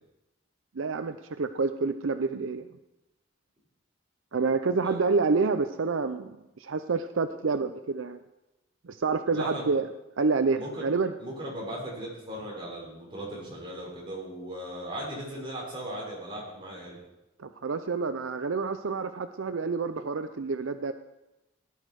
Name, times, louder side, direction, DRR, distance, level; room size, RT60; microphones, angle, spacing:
voice 1, 0.8-2.7 4.3-8.2 8.8-9.9 10.2-11.1 17.4-20.9, right 4 dB, 70° right, 10 dB, 0.6 m, -28 dB
voice 2, 9.3-9.7 10.5-10.8 11.2-17.0, right 1 dB, 25° right, -4 dB, 5.9 m, -37 dB
18.0 x 11.0 x 4.7 m, 0.97 s
head